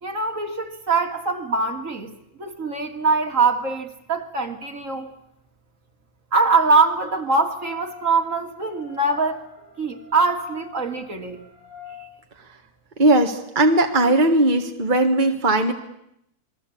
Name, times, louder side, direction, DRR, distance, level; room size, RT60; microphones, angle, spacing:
voice 1, 0.0-2.1 2.4-5.1 6.3-9.4 9.8-11.4, right 4 dB, 60° right, 5 dB, 3.0 m, -23 dB
sound 1, 7.5-12.0, left 8 dB, 70° left, 8.7 m, -46 dB
voice 2, 13.0-15.7, right 2 dB, 30° right, 4 dB, 1.9 m, -18 dB
28.0 x 22.0 x 8.6 m, 0.79 s
omnidirectional pair, 1.6 m